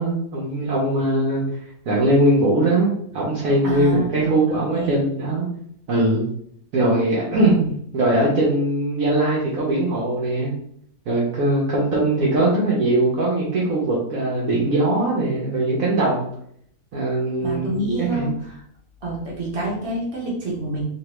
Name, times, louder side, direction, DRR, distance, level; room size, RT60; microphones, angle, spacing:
voice 1, 0.0-1.4 1.9-5.5 5.9-6.2 6.7-7.5 7.9-10.5 11.1-16.3 16.9-18.3, right 1 dB, 65° right, -6 dB, 1.1 m, -21 dB
voice 2, 3.6-5.0 7.3-7.7 17.4-18.6 19.0-20.8, right 2 dB, 45° right, -4 dB, 1.2 m, -28 dB
3.2 x 2.3 x 3.0 m, 0.68 s
omnidirectional pair, 1.6 m